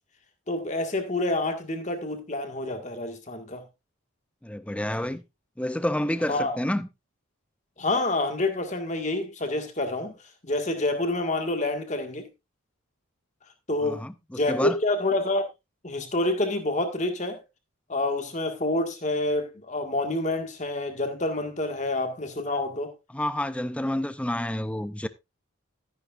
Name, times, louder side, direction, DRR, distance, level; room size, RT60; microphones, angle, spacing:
voice 1, 0.5-3.6 6.3-6.6 7.8-10.2 10.4-12.3 13.7-14.1 14.4-15.4 15.8-17.4 17.9-22.9, left 2 dB, 35° left, 1.8 m, -27 dB
voice 2, 4.4-5.2 5.6-6.9 13.8-14.8 23.1-25.1, left 1 dB, 5° left, 0.5 m, -29 dB
13.0 x 10.0 x 2.5 m
head